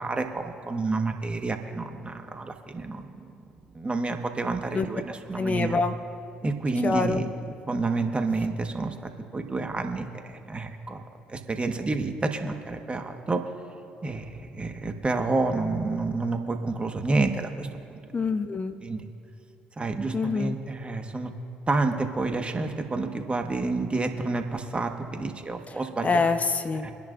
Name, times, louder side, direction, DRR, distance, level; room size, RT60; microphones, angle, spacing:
voice 1, 0.0-3.3 3.7-5.8 6.4-7.2 7.7-8.9 9.3-11.0 11.3-13.4 14.0-18.0 18.8-19.1 19.8-21.3 21.7-26.2 26.8-26.9, right 3 dB, 25° right, 5 dB, 1.5 m, -29 dB
voice 2, 5.3-5.9 6.8-7.3 18.1-18.8 20.1-20.6 26.0-26.9, left 4 dB, 35° left, 8 dB, 0.9 m, -25 dB
25.0 x 10.5 x 2.6 m, 2.5 s
hypercardioid pair, 55°, 4 cm